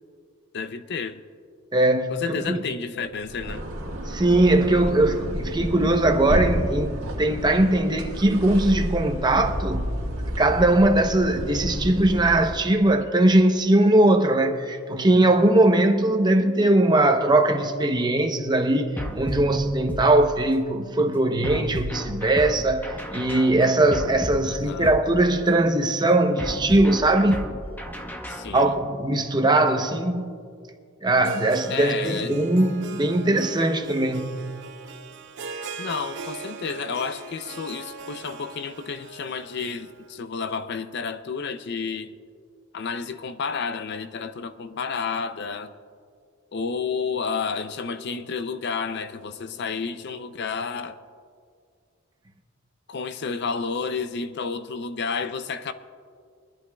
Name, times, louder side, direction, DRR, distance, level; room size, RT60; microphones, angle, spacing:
voice 1, 0.5-1.2 2.1-3.6 24.4-25.0 28.3-28.7 31.7-32.3 35.8-42.1 42.7-45.7 46.5-51.0 52.9-55.7, left 5 dB, 55° left, 0.5 m, -31 dB
voice 2, 1.7-2.6 4.1-10.0 10.4-27.4 28.5-30.4 31.0-34.4, right 1 dB, 20° right, 0.7 m, -20 dB
sound 1, 3.2-12.8, equal, 85° right, 1.5 m, -30 dB
sound 2, 19.0-20.7 21.4-25.6 26.4-28.9, equal, 10° left, 0.8 m, -34 dB
Harp, 31.1-40.1, right 4 dB, 60° right, 0.7 m, -40 dB
23.5 x 11.5 x 2.3 m
head